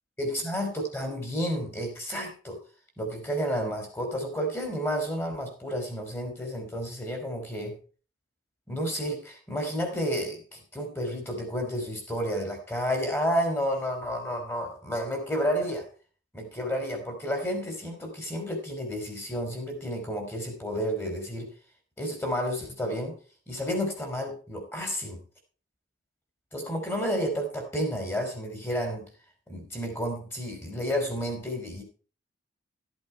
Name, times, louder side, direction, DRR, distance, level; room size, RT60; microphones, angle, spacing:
voice 1, 0.2-2.6 3.0-7.8 8.7-15.9 16.3-21.5 22.0-23.2 23.5-25.2 26.5-29.1 29.5-31.8, equal, 10° left, 5 dB, 3.2 m, -31 dB
13.5 x 8.1 x 4.5 m, 0.39 s
head